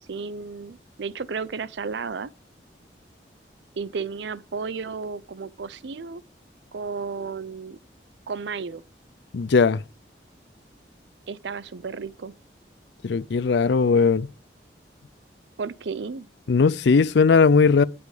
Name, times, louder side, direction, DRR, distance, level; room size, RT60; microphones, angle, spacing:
voice 1, 0.1-2.3 3.8-6.2 6.7-7.8 8.3-8.8 11.3-12.3 15.6-16.3, right 5 dB, 80° right, 0.5 m, -33 dB
voice 2, 9.3-9.8 13.0-14.3 16.5-17.8, left 5 dB, 80° left, 0.4 m, -18 dB
8.8 x 8.2 x 5.0 m
head